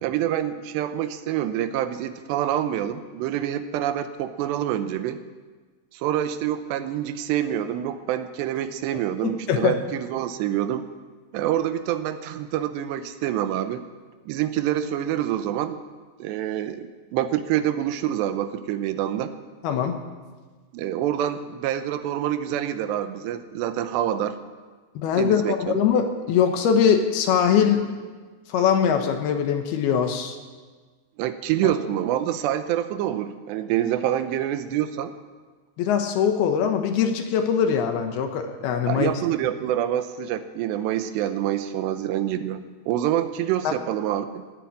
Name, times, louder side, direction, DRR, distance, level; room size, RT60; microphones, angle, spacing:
voice 1, 0.0-5.2 5.9-10.8 11.3-13.8 14.3-15.8 16.2-19.3 20.7-24.4 25.2-25.8 31.2-35.1 38.9-44.4, right 11 dB, 85° right, 10 dB, 2.9 m, -26 dB
voice 2, 9.2-9.8 19.6-20.0 25.0-27.8 28.5-30.4 31.6-31.7 35.8-39.1 43.6-43.7, left 7 dB, 70° left, 5 dB, 2.9 m, -22 dB
18.0 x 9.2 x 8.7 m, 1.4 s
omnidirectional pair, 5.0 m